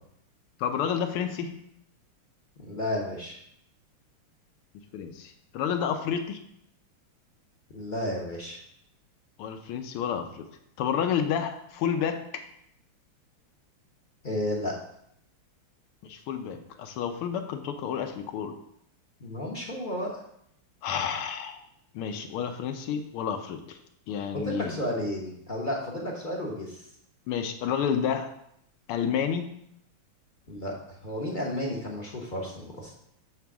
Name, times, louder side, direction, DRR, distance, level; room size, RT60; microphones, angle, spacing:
voice 1, 0.6-1.5 4.9-6.4 9.4-10.5 10.8-12.4 16.0-18.6 20.8-21.6 21.9-23.8 24.1-24.8 27.3-28.3 28.9-29.5, left 8 dB, 85° left, 6 dB, 1.6 m, -30 dB
voice 2, 2.6-3.4 7.7-8.6 14.2-14.7 19.2-20.1 24.3-26.9 30.5-32.9, left 1 dB, 40° left, -2 dB, 0.7 m, -32 dB
7.4 x 3.5 x 6.1 m, 0.73 s
omnidirectional pair, 2.4 m